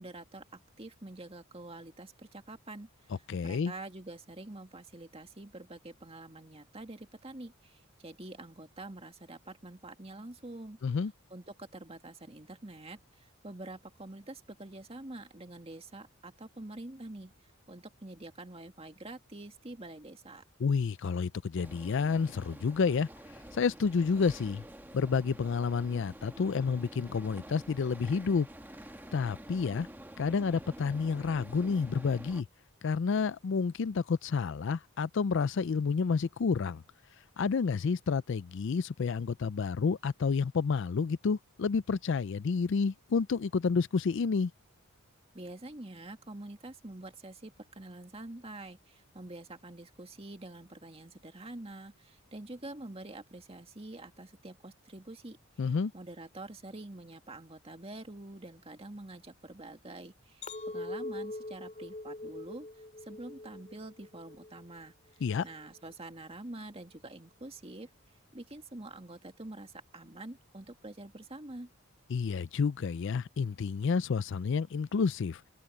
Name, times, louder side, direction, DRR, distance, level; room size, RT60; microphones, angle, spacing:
voice 1, 0.0-10.8 11.3-17.3 17.7-20.4 45.3-55.4 55.6-67.9 68.3-71.7, right 2 dB, 25° right, 2.1 m, -46 dB
voice 2, 3.3-3.7 10.8-11.1 20.6-23.1 23.5-24.6 24.9-28.5 29.1-29.9 30.2-32.5 32.8-36.8 37.4-44.5 55.6-55.9 65.2-65.4 72.1-75.4, left 5 dB, 55° left, 0.4 m, -30 dB
sound 1, 21.5-32.4, right 1 dB, 10° right, 1.2 m, -49 dB
Chink clink, 60.4-64.8 65.2-65.7, left 2 dB, 30° left, 2.8 m, -42 dB
head